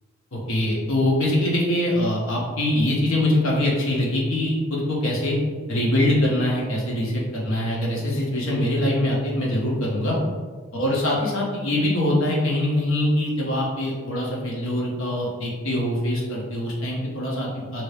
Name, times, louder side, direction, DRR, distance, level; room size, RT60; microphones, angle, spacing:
voice 1, 0.3-5.4 5.7-10.1 10.7-17.8, left 1 dB, 70° left, -4 dB, 0.9 m, -23 dB
2.9 x 2.7 x 3.2 m, 1.5 s
head